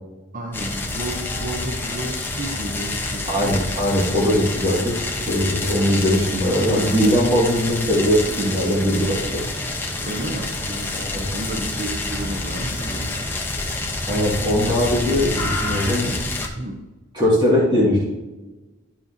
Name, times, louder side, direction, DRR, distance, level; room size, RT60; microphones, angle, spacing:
voice 1, 0.3-3.7 10.0-13.2 14.6-14.9 16.5-16.8, right 1 dB, 40° right, 1 dB, 1.0 m, -32 dB
sound 1, 0.5-16.5, left 2 dB, 10° left, 1.0 m, -27 dB
voice 2, 3.3-5.0 5.3-9.4 10.9-11.2 14.1-16.1 17.1-18.0, equal, 25° right, -5 dB, 2.2 m, -20 dB
12.0 x 5.6 x 2.8 m, 1.1 s
head